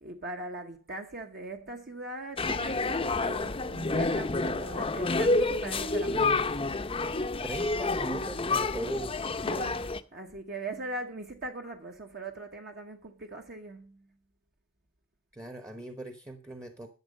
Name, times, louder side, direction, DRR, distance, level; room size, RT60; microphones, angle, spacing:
voice 1, 0.0-6.5 9.5-14.1, right 2 dB, 45° right, 1.0 m, -40 dB
sound 1, 2.4-10.0, left 3 dB, 25° left, 0.6 m, -29 dB
voice 2, 7.4-9.2 15.3-16.9, right 2 dB, 15° right, 0.9 m, -40 dB
12.5 x 7.2 x 5.3 m
head